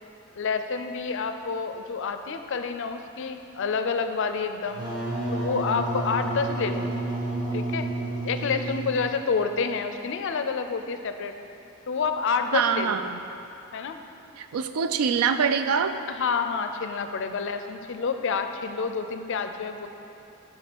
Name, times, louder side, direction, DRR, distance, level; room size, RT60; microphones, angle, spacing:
voice 1, 0.4-4.8 5.3-6.9 7.5-7.9 8.2-11.3 11.9-13.0 13.7-14.0 16.1-19.9, left 5 dB, 60° left, 8 dB, 0.4 m, -28 dB
Wind instrument woodwind instrument, 4.7-9.2, right 2 dB, 20° right, 1.6 m, -30 dB
voice 2, 12.5-13.2 14.4-15.9, right 6 dB, 85° right, 9 dB, 0.4 m, -24 dB
5.8 x 5.3 x 6.0 m, 2.8 s
head